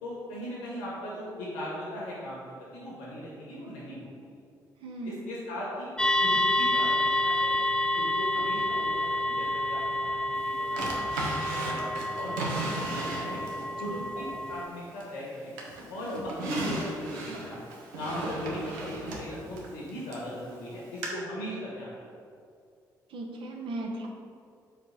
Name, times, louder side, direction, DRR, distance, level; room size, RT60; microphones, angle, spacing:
voice 1, 0.0-2.4 2.7-4.3 5.0-11.8 12.2-13.4 13.8-15.5 15.9-17.6 17.9-22.0, equal, 75° left, -6 dB, 1.5 m, -38 dB
voice 2, 4.8-5.3 13.7-14.1 23.1-24.1, right 2 dB, 60° right, 1 dB, 1.0 m, -37 dB
sound 1, 6.0-14.7, left 1 dB, 10° left, 0.4 m, -29 dB
Drawer open or close, 10.8-13.7 14.2-15.2 15.6-20.3 21.0-21.1, right 2 dB, 80° right, 0.9 m, -35 dB
4.9 x 4.3 x 5.7 m, 2.4 s
figure-of-eight pair, 40°, 10 cm